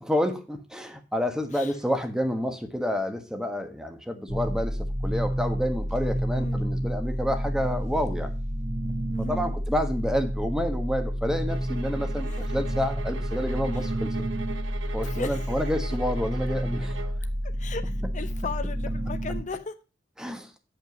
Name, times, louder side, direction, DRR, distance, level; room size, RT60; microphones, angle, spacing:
voice 1, 0.0-8.3 9.2-14.2 14.9-17.1 20.2-20.5, equal, 5° right, 1.3 m, -29 dB
sound 1, 4.3-19.4, equal, 40° right, 1.7 m, -30 dB
voice 2, 6.3-6.7 9.1-9.5 12.2-12.6 13.7-13.9 15.0-15.6 17.5-19.7, left 4 dB, 40° left, 0.8 m, -37 dB
sound 2, 11.5-17.2, right 4 dB, 90° right, 0.8 m, -41 dB
9.0 x 5.5 x 6.0 m
head